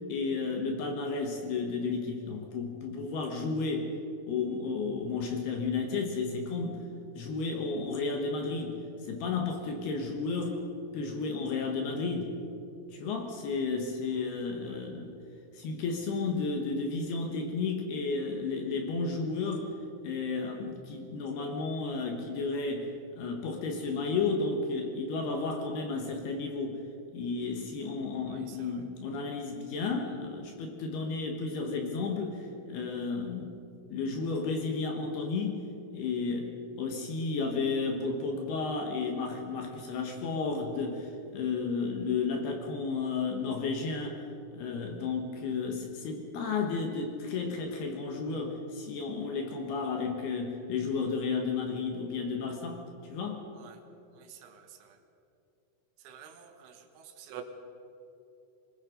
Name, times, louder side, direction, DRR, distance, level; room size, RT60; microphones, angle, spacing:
voice 1, 0.1-4.0 4.3-6.9 7.1-12.4 12.9-15.2 15.5-19.7 20.0-26.8 27.1-33.6 33.9-35.7 35.9-44.2 44.5-53.4, left 4 dB, 65° left, 3 dB, 3.0 m, -33 dB
voice 2, 56.1-56.7 57.3-57.4, right 11 dB, 75° right, 5 dB, 3.4 m, -46 dB
25.5 x 19.5 x 5.2 m, 2.8 s
omnidirectional pair, 5.8 m